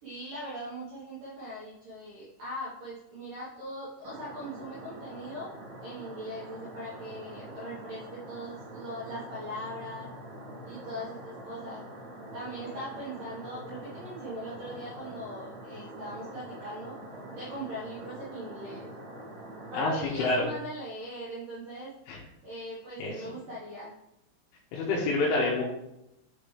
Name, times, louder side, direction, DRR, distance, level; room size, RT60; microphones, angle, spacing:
voice 1, 0.0-5.5 5.8-10.1 10.6-11.8 12.3-17.0 17.3-18.9 19.7-21.9 22.4-23.9, equal, 70° right, -8 dB, 2.0 m, -40 dB
sound 1, 4.0-20.2, right 1 dB, 55° right, 2.4 m, -44 dB
voice 2, 24.7-25.6, left 2 dB, 75° left, -5 dB, 3.2 m, -27 dB
8.0 x 4.4 x 3.2 m, 0.86 s
omnidirectional pair, 6.0 m